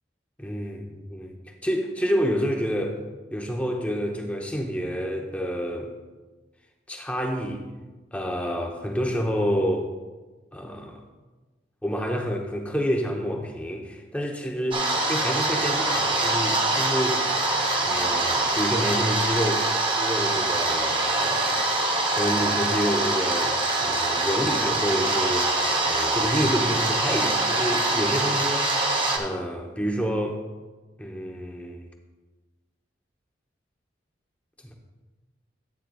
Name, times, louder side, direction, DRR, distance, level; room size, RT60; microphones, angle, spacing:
voice 1, 0.4-1.3 1.6-2.9 3.3-5.9 6.9-7.6 8.1-9.9 10.5-11.0 11.8-14.7 15.1-17.2 17.8-19.6 19.9-21.7 22.1-28.6 29.1-30.4 31.0-31.8 34.6-34.7, equal, 5° left, 2 dB, 0.7 m, -28 dB
sound 1, 14.7-29.2, right 2 dB, 25° right, 0.8 m, -24 dB
12.0 x 8.8 x 2.3 m, 1.2 s
head